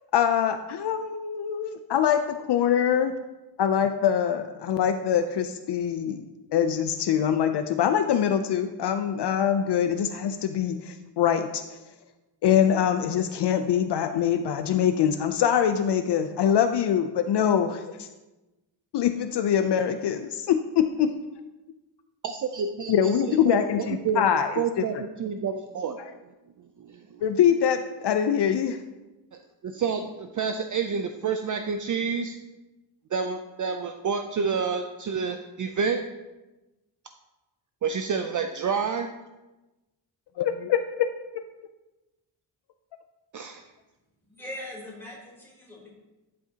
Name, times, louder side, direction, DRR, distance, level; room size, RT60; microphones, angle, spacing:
voice 1, 0.1-3.1 3.6-6.3 6.5-11.8 12.4-18.1 18.9-21.1 22.9-24.8 25.5-25.6 26.0-26.1 27.2-28.8 40.4-41.1, left 9 dB, 65° left, 8 dB, 0.5 m, -24 dB
voice 2, 22.2-24.2 24.6-26.0 26.8-27.2 29.6-32.4 33.1-36.0 37.8-39.1 43.3-43.6, right 6 dB, 45° right, 6 dB, 0.5 m, -29 dB
voice 3, 44.3-45.9, left 1 dB, 5° left, -6 dB, 3.4 m, -41 dB
11.5 x 7.6 x 2.8 m, 1.1 s
wide cardioid pair, 145°, 45 cm